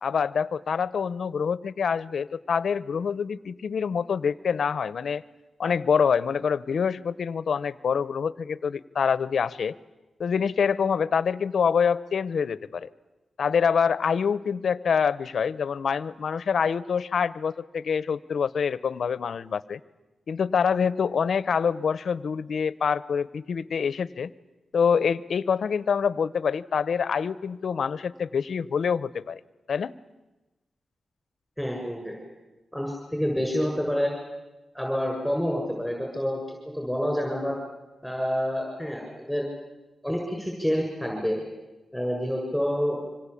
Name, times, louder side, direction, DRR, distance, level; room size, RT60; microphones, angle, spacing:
voice 1, 0.0-5.2 5.6-9.7 10.2-12.9 13.4-19.8 20.3-24.3 24.7-29.4 29.7-29.9, left 6 dB, 70° left, 17 dB, 0.9 m, -26 dB
voice 2, 31.6-32.2 32.7-34.1 34.7-36.4 36.7-37.5 38.0-39.5 40.0-41.4 41.9-43.0, equal, ahead, 0 dB, 7.4 m, -28 dB
26.0 x 25.0 x 8.6 m, 1.1 s
cardioid pair, 75°, 0 cm